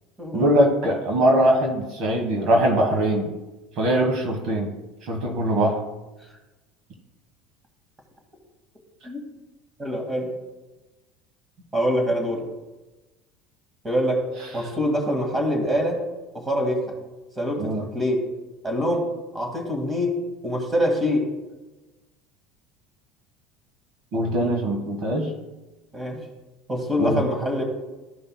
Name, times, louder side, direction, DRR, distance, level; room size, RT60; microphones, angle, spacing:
voice 1, 0.3-3.3 3.8-4.7 5.0-5.8 17.6-17.8 24.1-25.3 27.0-27.2, right 1 dB, 55° right, 2 dB, 1.5 m, -21 dB
voice 2, 9.8-10.3 11.7-12.4 13.8-14.3 14.5-16.0 16.3-16.9 17.4-18.2 18.6-19.0 19.3-20.2 20.4-21.3 25.9-26.2 26.7-27.6, equal, 15° right, 2 dB, 2.1 m, -24 dB
13.5 x 5.3 x 2.3 m, 1.1 s
supercardioid pair, 115°, 0 cm